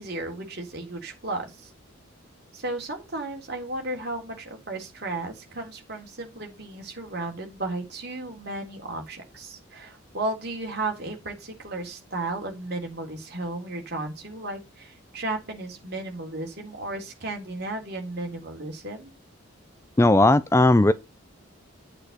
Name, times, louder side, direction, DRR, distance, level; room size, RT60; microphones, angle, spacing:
voice 1, 0.0-1.7 2.5-19.1, right 2 dB, 50° right, 3.6 m, -34 dB
voice 2, 20.0-20.9, left 2 dB, 15° left, 0.4 m, -17 dB
8.9 x 8.1 x 4.2 m
head